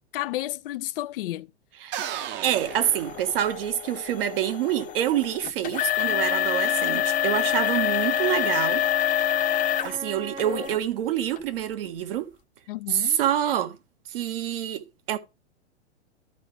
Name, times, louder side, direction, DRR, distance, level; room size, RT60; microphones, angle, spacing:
voice 1, 0.0-1.5 12.7-13.2, left 16 dB, 55° left, 0.6 m, -32 dB
sound 1, 1.9-3.9, right 10 dB, 35° right, 1.1 m, -35 dB
voice 2, 2.4-8.8 9.8-12.3 12.9-13.8 14.1-15.2, right 11 dB, 55° right, 1.6 m, -27 dB
sound 2, 2.6-10.0 10.4-10.8 11.4-11.5 12.1-12.2, left 13 dB, 25° left, 0.9 m, -27 dB
Wind instrument woodwind instrument, 6.0-10.8, right 3 dB, 15° right, 0.7 m, -38 dB
13.5 x 4.8 x 3.3 m
hypercardioid pair, 110°, 33 cm